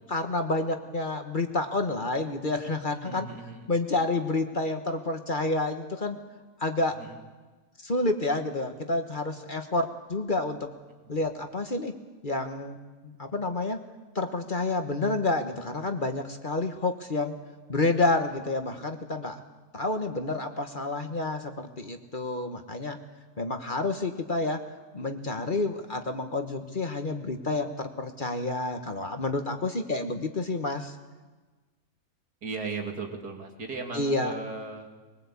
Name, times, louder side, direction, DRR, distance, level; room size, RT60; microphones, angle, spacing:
voice 1, 0.1-3.3 3.7-6.2 6.6-7.0 7.8-10.7 11.1-11.9 12.2-12.8 13.0-13.8 14.1-17.3 17.7-19.4 19.7-23.0 23.4-24.6 24.9-30.9 33.9-34.3, left 2 dB, 35° left, 6 dB, 1.4 m, -29 dB
voice 2, 3.0-3.7 7.0-7.1 32.4-34.9, right 4 dB, 85° right, 2 dB, 3.3 m, -36 dB
21.5 x 20.5 x 8.4 m, 1.3 s
omnidirectional pair, 1.6 m